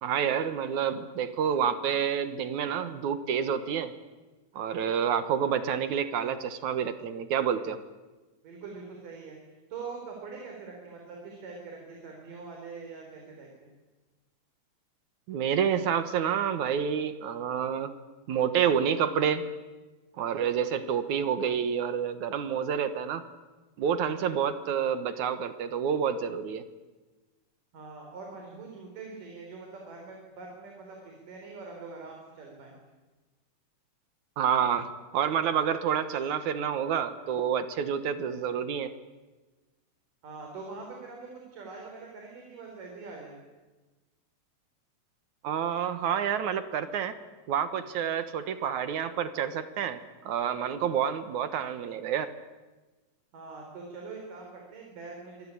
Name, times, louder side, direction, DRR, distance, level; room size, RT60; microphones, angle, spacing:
voice 1, 0.0-3.9 4.6-7.8 15.3-17.9 18.3-19.4 20.2-23.2 23.8-26.6 34.4-34.9 35.1-38.9 45.4-47.2 47.5-50.0 50.3-52.3, right 8 dB, 70° right, 11 dB, 2.6 m, -28 dB
voice 2, 8.4-9.4 9.7-13.7 27.7-32.7 40.2-43.4 53.3-55.5, right 4 dB, 90° right, 1 dB, 5.5 m, -43 dB
26.5 x 21.0 x 9.9 m, 1.2 s
omnidirectional pair, 3.7 m